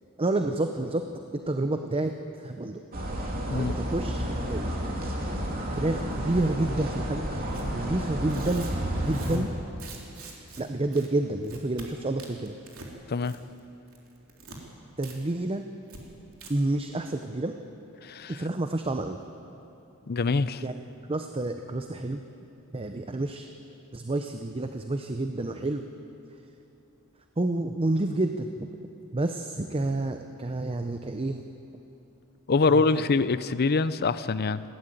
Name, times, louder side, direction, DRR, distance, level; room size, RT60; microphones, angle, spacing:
voice 1, 0.2-2.8 3.5-4.7 5.7-7.3 7.7-8.7 9.0-9.5 10.6-12.5 15.0-15.6 16.5-17.6 18.3-19.2 20.6-20.7 21.1-22.3 22.7-23.5 23.9-25.9 27.4-28.7 29.1-31.4 32.6-33.2, right 2 dB, 25° right, 6 dB, 0.7 m, -29 dB
sound 1, 2.9-9.4, equal, 45° right, 2.9 m, -31 dB
Tearing, 7.5-7.7 8.2-10.6 10.9-11.1 11.4-11.9 12.2-12.9 13.2-13.6 13.9-14.6 15.0-15.2 15.4-15.5 15.9-16.0 16.3-16.5, right 4 dB, 70° right, 3.3 m, -45 dB
voice 2, 18.0-18.3 20.1-20.6 32.5-34.6, left 4 dB, 45° left, 15 dB, 0.6 m, -24 dB
20.5 x 16.0 x 9.1 m, 2.9 s
head